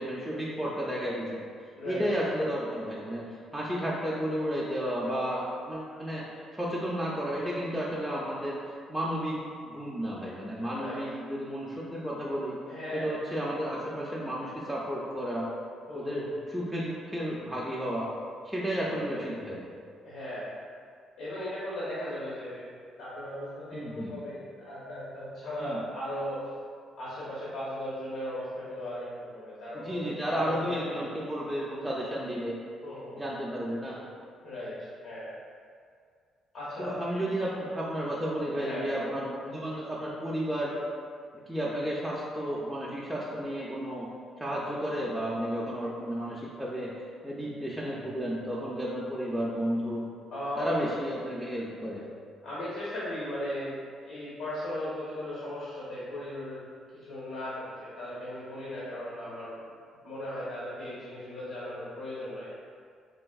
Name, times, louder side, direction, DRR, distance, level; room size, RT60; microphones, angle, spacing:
voice 1, 0.0-1.4 1.9-12.6 12.9-15.5 15.9-18.1 18.4-19.6 23.7-24.1 25.6-25.8 29.7-32.6 33.2-34.1 36.8-40.7 41.5-44.1 44.4-46.9 47.2-50.1 50.6-52.1, equal, ahead, -6 dB, 0.3 m, -32 dB
voice 2, 1.7-2.3 10.7-11.0 12.7-13.1 15.9-16.3 18.7-19.3 20.0-20.5 21.2-22.7 23.0-26.4 27.0-31.0 32.8-33.3 34.4-35.3 36.5-37.0 38.5-39.2 50.3-51.0 52.4-56.7 56.9-59.6 60.0-62.5, left 1 dB, 80° left, -9 dB, 0.7 m, -37 dB
3.3 x 2.4 x 2.3 m, 2.1 s
cardioid pair, 115°, 0 cm